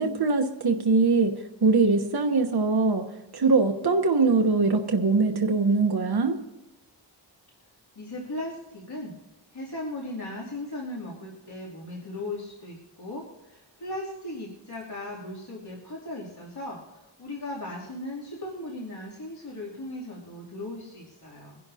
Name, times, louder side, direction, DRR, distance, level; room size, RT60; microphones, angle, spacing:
voice 1, 0.0-1.3 1.6-3.0 3.3-6.4, right 3 dB, 60° right, 4 dB, 1.0 m, -22 dB
voice 2, 8.0-9.2 9.5-16.8 17.2-21.6, left 1 dB, 60° left, -6 dB, 2.8 m, -37 dB
23.0 x 11.5 x 2.7 m, 1.0 s
wide cardioid pair, 50°, 44 cm